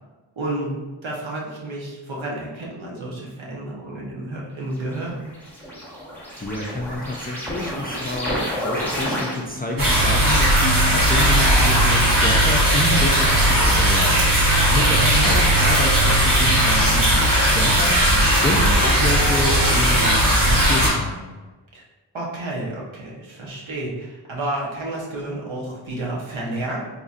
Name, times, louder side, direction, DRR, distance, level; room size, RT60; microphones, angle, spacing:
voice 1, 0.4-0.7 1.0-5.2 15.0-15.3 21.7-21.8 22.1-26.8, right 1 dB, 75° right, -4 dB, 1.0 m, -30 dB
sound 1, 4.8-9.7, equal, 5° left, 0.9 m, -30 dB
voice 2, 6.4-21.3, left 1 dB, 20° left, -1 dB, 0.3 m, -28 dB
sound 2, 9.8-20.9, right 1 dB, 45° right, 1.2 m, -17 dB
4.0 x 2.9 x 2.4 m, 1.2 s
wide cardioid pair, 100°, 47 cm